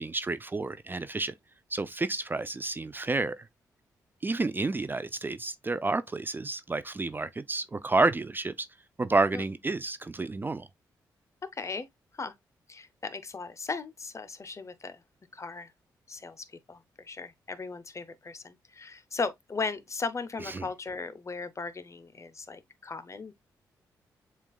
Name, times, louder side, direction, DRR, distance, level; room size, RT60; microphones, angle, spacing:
voice 1, 0.0-1.3 1.7-3.5 4.2-8.7 9.0-10.7 20.5-20.7, right 3 dB, 25° right, 0.4 m, -30 dB
voice 2, 11.5-11.9 12.2-12.3 12.7-15.0 15.3-15.7 16.1-23.3, left 4 dB, 35° left, 0.6 m, -37 dB
7.1 x 2.4 x 2.2 m
supercardioid pair, 45°, 8 cm